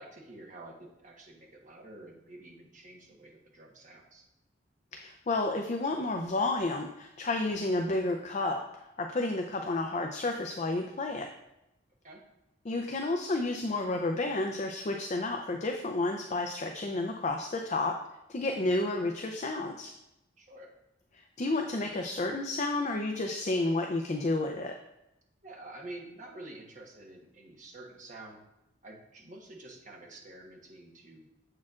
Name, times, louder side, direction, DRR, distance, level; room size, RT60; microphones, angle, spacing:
voice 1, 0.0-4.2 12.0-12.2 20.4-20.7 25.4-28.4 28.8-31.3, right 2 dB, 45° right, 0 dB, 1.1 m, -48 dB
voice 2, 4.9-8.6 9.0-11.3 12.6-18.0 18.3-19.9 21.4-24.8, left 2 dB, 40° left, 4 dB, 0.5 m, -31 dB
7.3 x 6.4 x 2.4 m, 0.88 s
head